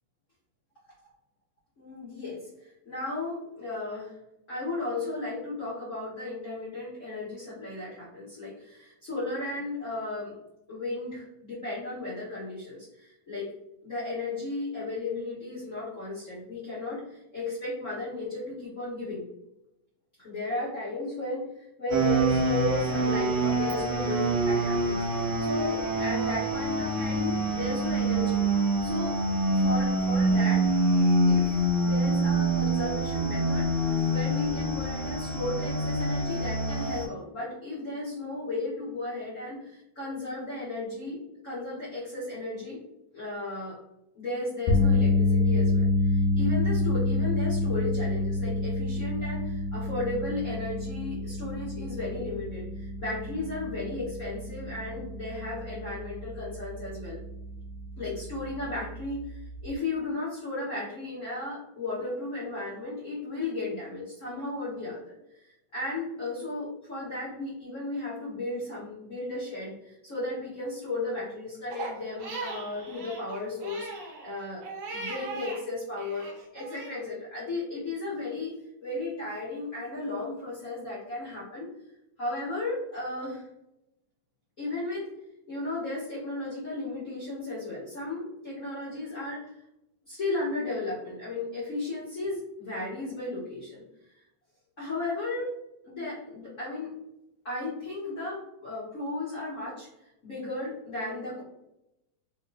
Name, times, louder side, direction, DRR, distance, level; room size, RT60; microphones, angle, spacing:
voice 1, 1.8-4.1 4.5-10.3 10.7-13.5 13.8-19.2 20.2-21.5 21.8-28.4 28.8-29.2 29.5-41.2 41.4-42.8 43.1-43.8 44.1-57.2 58.0-65.5 65.7-73.9 74.2-74.6 74.9-76.3 76.5-78.5 78.8-81.7 82.2-83.4 84.6-85.1 85.5-89.5 90.1-93.8 94.8-95.5 95.8-96.9 97.4-99.9 100.2-101.4, left 2 dB, 50° left, -9 dB, 0.9 m, -35 dB
sound 1, 21.9-37.1, right 2 dB, 85° right, 2.1 m, -26 dB
sound 2, 44.7-56.9 57.3-57.5 59.7-59.8, left 2 dB, 80° left, 1.7 m, -27 dB
Crying sobbing, 71.7-75.6 76.0-77.0, right 3 dB, 65° right, 1.9 m, -39 dB
4.2 x 3.0 x 2.4 m, 0.86 s
omnidirectional pair, 3.4 m